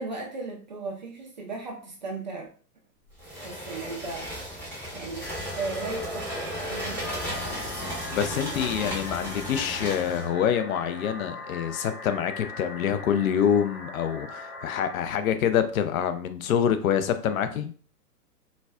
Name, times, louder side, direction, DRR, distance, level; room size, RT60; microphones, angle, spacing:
voice 1, 0.0-2.5 3.4-4.3 4.9-5.3 5.5-7.0, right 3 dB, 30° right, -1 dB, 0.4 m, -36 dB
sound 1, 3.2-10.3, equal, 5° left, 0.7 m, -35 dB
sound 2, 5.2-14.9, left 2 dB, 40° left, 0.9 m, -40 dB
voice 2, 8.1-17.7, left 8 dB, 60° left, 9 dB, 0.5 m, -26 dB
4.0 x 2.2 x 2.3 m, 0.41 s
hypercardioid pair, 125°, 47 cm